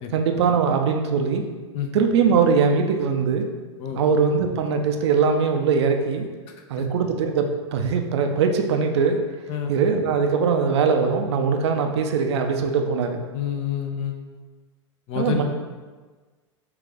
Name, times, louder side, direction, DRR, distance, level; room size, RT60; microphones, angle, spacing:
voice 1, 0.1-1.4 1.9-3.5 4.0-6.3 6.7-9.2 9.7-13.2 15.2-15.4, right 5 dB, 60° right, 5 dB, 0.6 m, -21 dB
voice 2, 13.3-14.2 15.1-15.4, left 9 dB, 40° left, 4 dB, 0.6 m, -28 dB
5.9 x 2.4 x 3.7 m, 1.4 s
figure-of-eight pair, 95°, 16 cm